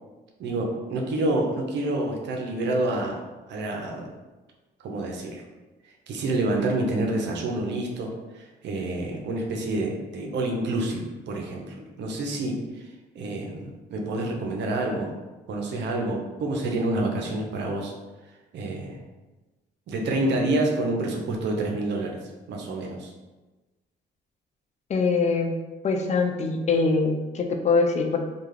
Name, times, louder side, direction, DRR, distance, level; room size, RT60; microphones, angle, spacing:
voice 1, 0.4-3.2 3.5-4.1 4.8-5.4 6.1-11.0 11.3-12.6 13.1-15.1 15.5-17.9 18.5-19.0 19.9-22.2 22.5-23.1, right 2 dB, 65° right, 1 dB, 0.6 m, -28 dB
voice 2, 24.9-25.5 25.8-28.2, left 4 dB, 35° left, 4 dB, 0.4 m, -23 dB
2.3 x 2.3 x 3.1 m, 1.2 s
cardioid pair, 75°, 19 cm